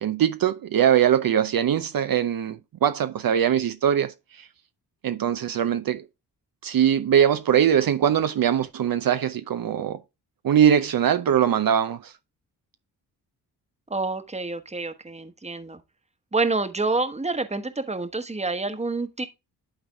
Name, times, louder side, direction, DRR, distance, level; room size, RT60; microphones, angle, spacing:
voice 1, 0.0-4.1 5.0-6.0 6.6-10.0 10.4-12.1, right 9 dB, 55° right, 0.7 m, -21 dB
voice 2, 13.9-15.8 16.3-19.3, right 3 dB, 15° right, 1.2 m, -28 dB
11.5 x 3.9 x 3.5 m
supercardioid pair, 55°, 42 cm